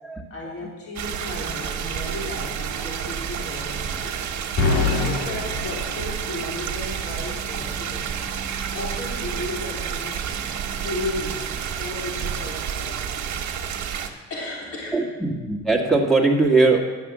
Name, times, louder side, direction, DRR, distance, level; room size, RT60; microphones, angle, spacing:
voice 1, 0.3-4.2 4.6-8.1 8.7-10.3 10.6-11.5 11.8-13.0 14.3-15.1, left 2 dB, 50° left, -3 dB, 3.3 m, -34 dB
sound 1, 1.0-14.1, right 8 dB, 70° right, 1.3 m, -30 dB
sound 2, 4.6-6.7, left 4 dB, 80° left, 1.8 m, -25 dB
voice 2, 14.9-16.8, right 3 dB, ahead, -1 dB, 1.9 m, -20 dB
10.5 x 7.2 x 7.5 m, 1.3 s
cardioid pair, 90°, 30 cm